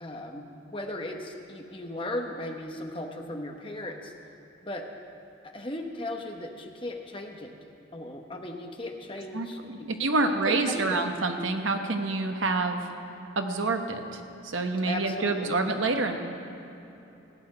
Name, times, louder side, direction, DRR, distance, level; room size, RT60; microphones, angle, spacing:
voice 1, 0.0-4.1 4.6-4.8 5.5-7.5 7.9-9.9 10.2-11.0 14.9-15.5, left 1 dB, 25° left, 2 dB, 1.0 m, -37 dB
voice 2, 9.3-12.8 13.4-16.2, right 3 dB, 80° right, 5 dB, 1.1 m, -27 dB
16.0 x 6.0 x 9.7 m, 3.0 s
head